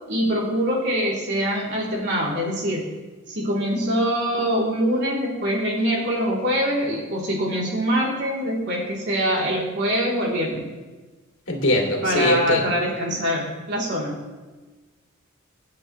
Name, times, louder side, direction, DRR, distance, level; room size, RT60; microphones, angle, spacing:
voice 1, 0.1-2.9 3.3-10.7 12.0-14.2, equal, 55° right, -3 dB, 3.2 m, -24 dB
voice 2, 11.5-12.8, left 1 dB, 65° left, -1 dB, 2.6 m, -22 dB
25.0 x 8.4 x 3.2 m, 1.3 s
head